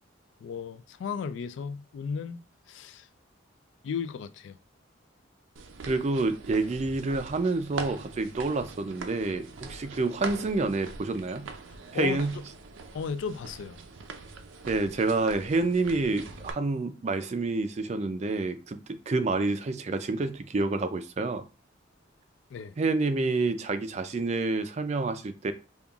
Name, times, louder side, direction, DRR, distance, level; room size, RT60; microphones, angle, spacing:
voice 1, 0.4-2.4 2.7-3.1 3.8-4.6 11.9-12.2 12.9-13.8 22.5-22.8, left 6 dB, 75° left, 0.3 m, -35 dB
sound 1, 5.6-16.5, right 4 dB, 90° right, 0.5 m, -43 dB
voice 2, 5.9-11.5 11.9-12.4 14.7-21.4 22.8-25.5, right 3 dB, 35° right, 0.3 m, -28 dB
5.3 x 2.3 x 2.3 m
head